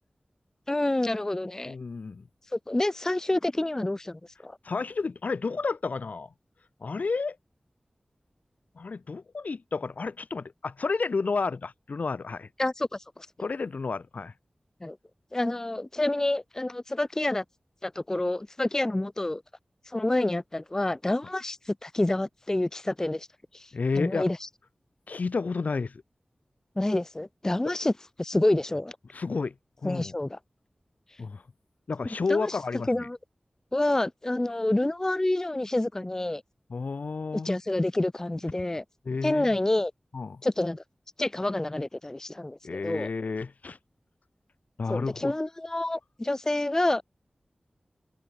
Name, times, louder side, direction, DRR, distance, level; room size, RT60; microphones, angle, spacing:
voice 1, 0.7-1.8 2.5-4.6 12.6-12.9 13.2-13.3 14.8-15.0 15.3-17.4 17.8-19.4 19.9-23.3 23.5-23.7 24.0-24.4 26.8-27.9 28.2-29.0 29.8-30.4 32.3-32.6 32.9-33.2 33.7-36.4 37.4-38.8 39.2-39.9 40.4-40.8 41.2-43.1 44.9-47.0, left 1 dB, 20° left, 0.3 m, -28 dB
voice 2, 1.7-2.2 4.6-6.3 6.8-7.4 8.8-12.5 13.4-14.3 23.7-24.3 25.1-26.0 27.6-27.7 29.1-29.5 29.8-30.1 31.2-31.4 31.9-33.1 36.7-37.5 39.0-39.6 40.1-40.4 42.6-43.8 44.8-45.3, left 4 dB, 75° left, 0.6 m, -31 dB
open air
wide cardioid pair, 50°, 3 cm